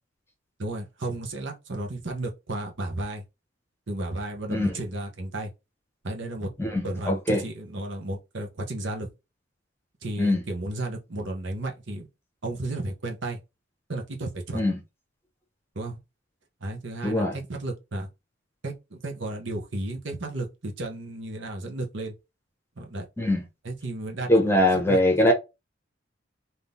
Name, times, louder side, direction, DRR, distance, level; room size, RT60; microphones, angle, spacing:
voice 1, 0.6-3.2 3.9-5.5 6.0-6.5 6.8-9.1 10.0-12.1 12.4-13.4 13.9-14.6 15.7-16.0 16.6-18.1 18.6-22.1 22.8-23.1 23.6-25.0, right 2 dB, 65° right, 1.0 m, -33 dB
voice 2, 6.6-7.4 10.2-10.4 14.5-14.8 17.0-17.4 23.2-23.4 24.3-25.3, left 1 dB, 10° left, 1.0 m, -22 dB
3.7 x 2.8 x 3.7 m
head